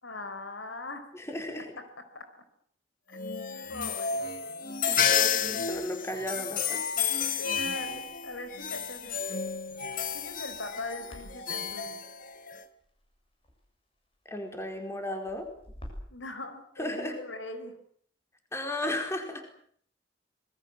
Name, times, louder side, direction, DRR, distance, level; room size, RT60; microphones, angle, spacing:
voice 1, 0.0-1.0 1.8-1.9 2.1-2.3 3.1-3.2 3.7-4.4 7.1-9.5 10.1-12.0 16.1-17.8, left 2 dB, 90° left, 9 dB, 4.6 m, -40 dB
voice 2, 1.1-1.8 4.9-6.8 14.3-15.5 16.8-17.1 18.5-19.4, left 1 dB, 15° left, 4 dB, 4.7 m, -35 dB
sound 1, 3.1-12.6, left 7 dB, 45° left, 1.8 m, -31 dB
Crackle, 6.9-16.2, equal, 30° left, 7.3 m, -52 dB
26.5 x 21.0 x 7.8 m, 0.62 s
head